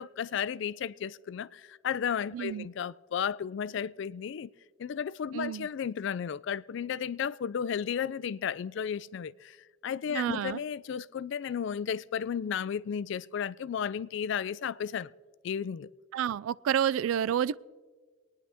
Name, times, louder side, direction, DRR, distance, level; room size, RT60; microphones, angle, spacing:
voice 1, 0.0-4.5 4.8-9.6 9.8-15.1 15.4-15.9, left 7 dB, 60° left, 0.3 m, -33 dB
voice 2, 2.3-2.7 5.3-5.7 10.1-10.6 16.1-17.6, right 9 dB, 85° right, 0.3 m, -29 dB
24.0 x 9.7 x 3.4 m
head